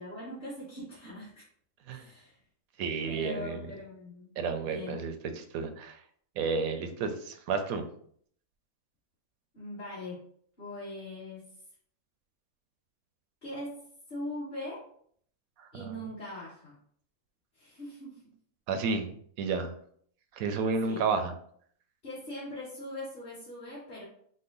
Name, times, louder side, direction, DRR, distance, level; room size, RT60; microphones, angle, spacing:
voice 1, 0.0-1.4 1.9-2.4 3.0-4.3 4.6-5.1 9.5-10.3 10.6-11.5 13.4-14.8 15.7-16.8 17.5-18.2 20.8-21.0 22.0-24.0, left 1 dB, 35° left, -9 dB, 1.5 m, -41 dB
voice 2, 2.8-3.7 4.4-6.0 6.4-7.8 15.6-16.0 18.7-19.7 20.3-21.3, right 4 dB, 75° right, 7 dB, 1.0 m, -31 dB
5.2 x 2.1 x 3.8 m, 0.62 s
omnidirectional pair, 1.6 m